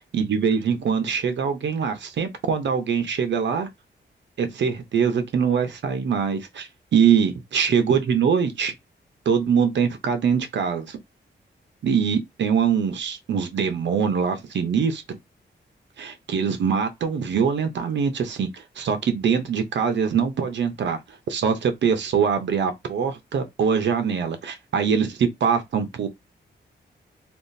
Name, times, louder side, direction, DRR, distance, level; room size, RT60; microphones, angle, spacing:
voice 1, 0.1-3.7 4.4-8.7 9.3-11.0 11.8-15.2 16.0-21.0 21.3-26.1, right 6 dB, 75° right, 0.7 m, -23 dB
3.5 x 2.4 x 2.6 m
wide cardioid pair, 130°, 19 cm